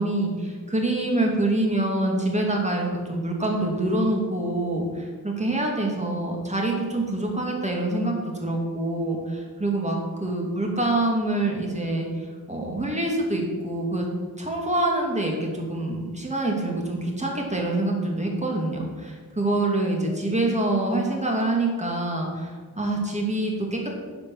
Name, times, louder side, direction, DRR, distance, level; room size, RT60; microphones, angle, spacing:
voice 1, 0.0-14.0 14.4-23.9, right 2 dB, 20° right, 0 dB, 2.3 m, -26 dB
11.0 x 5.2 x 7.3 m, 1.5 s
wide cardioid pair, 95°, 38 cm